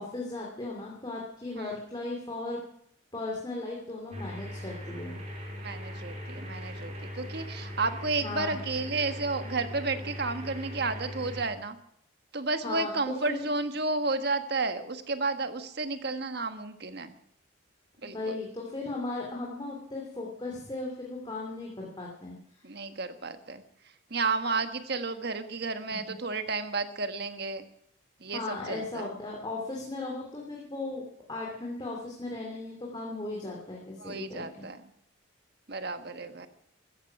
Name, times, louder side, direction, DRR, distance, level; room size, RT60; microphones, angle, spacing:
voice 1, 0.0-2.6 3.1-5.1 8.2-8.6 12.6-13.4 18.0-22.4 25.9-26.0 28.3-34.6, left 2 dB, 20° left, -3 dB, 3.0 m, -37 dB
sound 1, 4.1-11.4, left 1 dB, 30° right, 4.9 m, -40 dB
voice 2, 5.6-11.8 12.3-17.1 18.0-18.3 22.6-23.6 24.1-27.6 28.2-29.1 34.0-34.8 35.7-36.5, right 3 dB, 50° right, 9 dB, 1.4 m, -32 dB
15.0 x 14.5 x 6.0 m, 0.69 s
head